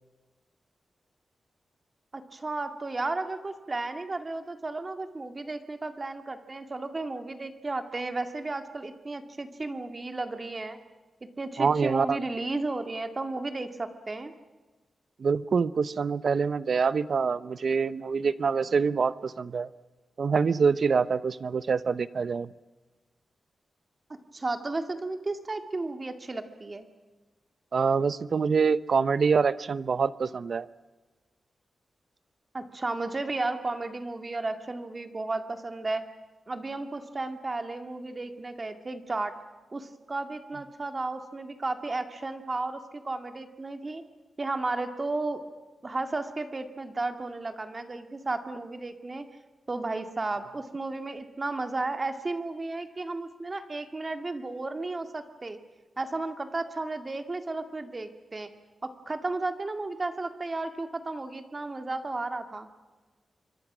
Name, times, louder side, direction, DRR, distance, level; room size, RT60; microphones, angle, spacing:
voice 1, 2.1-10.8 11.4-14.3 24.3-26.9 32.5-36.0 36.5-39.3 39.7-44.0 44.4-45.4 45.8-49.2 49.7-55.6 56.0-58.5 58.8-62.7, right 2 dB, 30° right, 7 dB, 2.2 m, -33 dB
voice 2, 11.6-12.2 15.2-19.7 20.2-22.5 27.7-30.7, right 5 dB, 60° right, 16 dB, 0.8 m, -25 dB
27.5 x 24.5 x 6.2 m, 1.2 s
wide cardioid pair, 125°, 0 cm